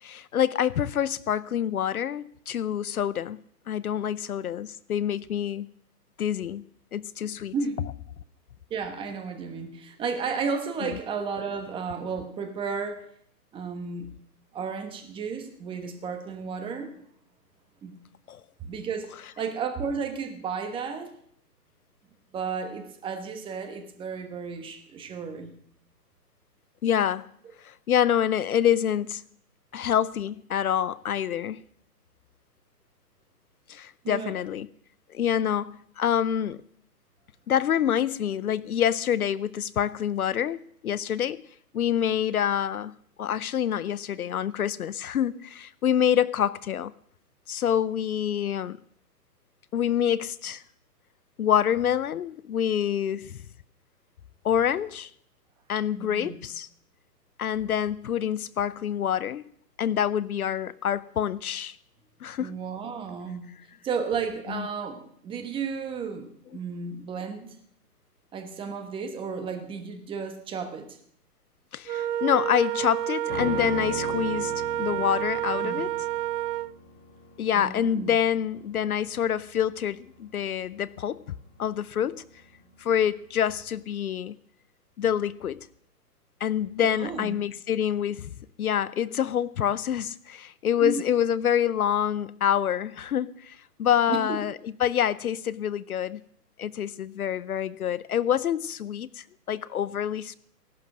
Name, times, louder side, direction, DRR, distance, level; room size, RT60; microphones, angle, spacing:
voice 1, 0.0-3.4 3.7-5.7 6.2-6.6 6.9-7.5 10.8-10.9 18.3-18.4 26.8-27.3 27.6-29.2 29.7-31.6 33.7-34.7 35.1-36.6 37.5-41.4 41.7-46.9 47.5-48.8 49.7-50.6 51.4-53.4 54.4-55.1 55.7-56.7 57.4-59.5 59.8-61.8 62.2-62.6 64.5-64.7 71.7-76.0 77.4-81.2 81.6-82.2 82.8-84.4 85.0-85.7 86.4-88.3 88.6-96.2 96.6-100.3, left 9 dB, 60° left, 0.7 m, -26 dB
voice 2, 8.7-13.0 13.5-14.1 14.5-16.9 17.8-18.0 18.6-19.1 19.4-21.1 22.3-25.5 34.0-34.4 56.0-56.4 62.4-63.5 63.8-67.6 68.3-71.0 75.6-75.8 77.5-78.2 86.9-87.3 90.8-91.0 94.1-94.4, right 5 dB, 10° right, 1.2 m, -33 dB
Wind instrument woodwind instrument, 71.9-76.8, right 12 dB, 75° right, 0.6 m, -29 dB
sound 1, 73.3-82.7 83.0-83.1, left 3 dB, 35° left, 4.1 m, -40 dB
17.0 x 11.5 x 6.2 m
hypercardioid pair, 140°, 49 cm